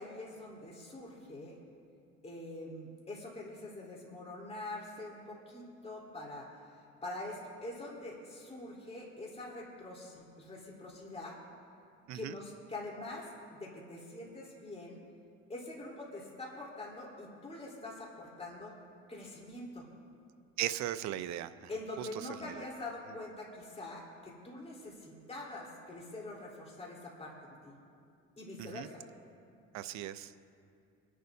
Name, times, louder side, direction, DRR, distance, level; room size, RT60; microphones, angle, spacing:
voice 1, 0.0-1.6 2.2-6.5 7.0-11.4 12.1-15.0 15.5-18.8 19.1-19.9 21.7-27.4 27.6-27.7 28.4-29.0, left 2 dB, 20° left, -4 dB, 3.8 m, -44 dB
voice 2, 20.6-21.7 22.0-22.1 22.5-22.6 28.6-28.9 29.7-30.3, right 13 dB, 65° right, 13 dB, 0.6 m, -37 dB
25.5 x 11.0 x 2.7 m, 2.4 s
cardioid pair, 105°, 30 cm